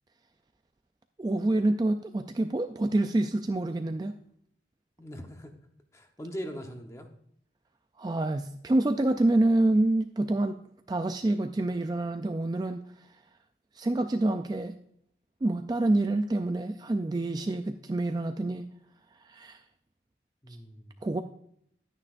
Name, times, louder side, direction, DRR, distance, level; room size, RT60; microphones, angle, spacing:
voice 1, 1.2-4.2 8.0-10.6 10.9-12.8 13.8-14.7 15.4-18.7 19.2-19.6 21.0-21.2, right 2 dB, 25° right, 7 dB, 0.3 m, -27 dB
voice 2, 5.0-5.5 5.9-7.1 20.4-21.0, equal, 15° left, 4 dB, 0.9 m, -41 dB
11.0 x 9.5 x 2.5 m, 0.69 s
head